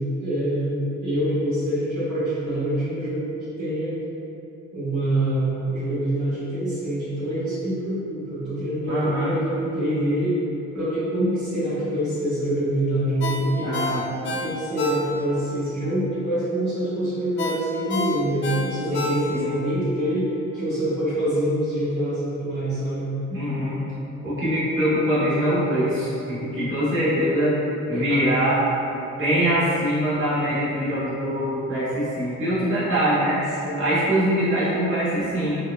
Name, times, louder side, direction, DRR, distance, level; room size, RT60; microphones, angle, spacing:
voice 1, 0.0-4.0 4.7-10.4 10.7-13.7 14.4-23.1 27.9-28.2 33.6-33.8, right 1 dB, 70° right, -12 dB, 1.3 m, -25 dB
voice 2, 8.9-9.3 13.6-14.0 18.9-19.5 23.3-23.8 24.2-27.6 27.9-28.6 29.2-33.4 33.8-35.6, equal, 40° right, -11 dB, 1.4 m, -23 dB
Ringtone, 13.2-15.5 15.8-15.9 17.4-19.6 20.0-20.1, left 3 dB, 40° left, 0.5 m, -29 dB
4.5 x 2.2 x 2.3 m, 2.8 s
cardioid pair, 90°, 30 cm